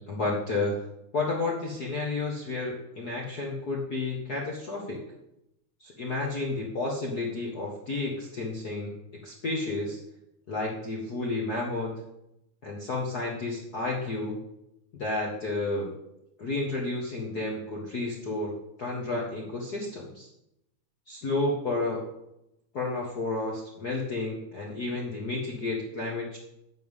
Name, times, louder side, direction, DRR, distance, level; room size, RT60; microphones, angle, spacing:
voice 1, 0.1-0.8 1.1-5.0 5.8-8.9 9.2-10.0 10.5-12.0 12.6-14.4 14.9-15.9 16.4-20.3 21.1-22.0 22.7-26.4, left 2 dB, 40° left, -2 dB, 1.6 m, -31 dB
10.5 x 5.6 x 8.2 m, 0.83 s
omnidirectional pair, 3.3 m